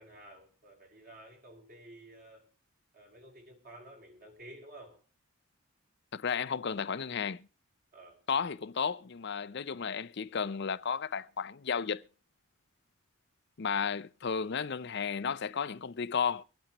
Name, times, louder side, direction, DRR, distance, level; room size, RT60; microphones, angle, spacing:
voice 1, 0.0-2.4 2.9-5.0 7.9-8.2, right 1 dB, 40° right, 5.6 m, -52 dB
voice 2, 6.1-7.5 8.3-12.0 13.6-16.4, left 6 dB, 50° left, 0.6 m, -33 dB
24.5 x 8.8 x 3.0 m
head